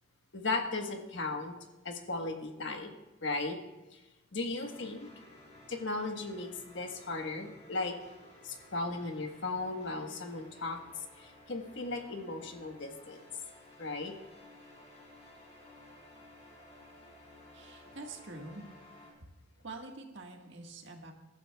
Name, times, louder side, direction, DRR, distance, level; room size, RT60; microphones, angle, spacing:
voice 1, 0.3-1.5 1.8-2.9 3.2-3.6 3.9-4.0 4.3-5.1 5.7-8.0 8.4-10.8 11.2-13.2 13.8-14.1, left 3 dB, 65° left, 3 dB, 1.4 m, -36 dB
sound 1, 4.6-19.1, left 1 dB, 35° left, 3.7 m, -56 dB
voice 2, 17.5-18.6 19.6-21.1, right 2 dB, 65° right, 2 dB, 1.7 m, -46 dB
21.5 x 12.0 x 2.4 m, 1.0 s
head